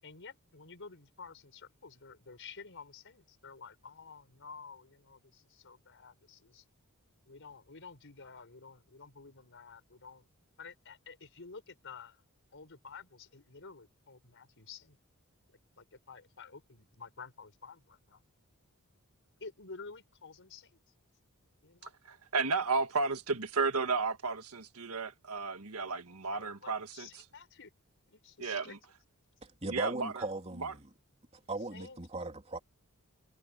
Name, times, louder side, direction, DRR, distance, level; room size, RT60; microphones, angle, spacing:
voice 1, 0.0-6.6 7.3-10.3 10.6-12.2 12.5-15.0 15.5-18.2 19.4-20.8 21.6-21.9 26.3-27.7 28.1-28.8 31.7-32.0, left 5 dB, 60° left, 4.9 m, -51 dB
voice 2, 21.8-27.2 28.4-28.8 29.7-30.2 30.6-30.7, right 4 dB, 75° right, 1.7 m, -33 dB
voice 3, 29.4-30.9 31.5-32.6, right 2 dB, 30° right, 3.0 m, -38 dB
head